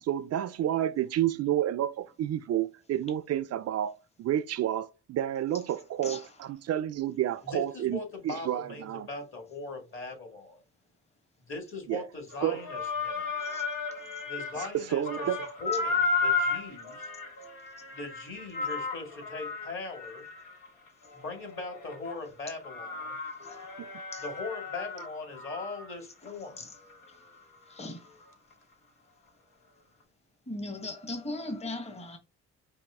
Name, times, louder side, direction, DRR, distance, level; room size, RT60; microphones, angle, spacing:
voice 1, 0.0-8.0 8.2-9.1 11.9-12.1 12.4-12.6 14.7-15.4 23.8-23.9, right 11 dB, 55° right, 0.4 m, -30 dB
voice 2, 7.4-10.6 11.4-13.3 14.3-15.3 15.6-17.1 17.9-20.2 21.1-23.2 24.2-26.6, left 3 dB, 45° left, 2.2 m, -40 dB
sound 1, 12.3-14.8 15.0-22.2 22.6-26.0 26.3-26.4 26.9-27.0, left 4 dB, 90° left, 1.3 m, -34 dB
voice 3, 27.7-28.1 30.5-32.2, left 2 dB, 20° left, 1.1 m, -38 dB
5.2 x 2.5 x 3.5 m
cardioid pair, 90°, 30 cm